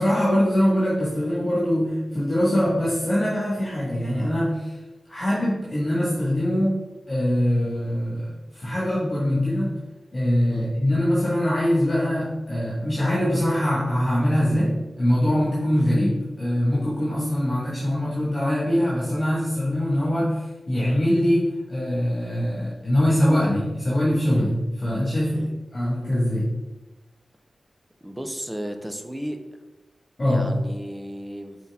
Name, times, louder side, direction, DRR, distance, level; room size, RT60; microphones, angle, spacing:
voice 1, 0.0-4.8 5.1-6.8 7.1-9.8 10.1-26.6 30.2-30.6, equal, 35° left, -8 dB, 1.9 m, -23 dB
voice 2, 28.0-29.4 30.2-31.6, equal, 10° right, 6 dB, 0.7 m, -34 dB
6.3 x 4.2 x 3.6 m, 1.1 s
wide cardioid pair, 95°, 0 cm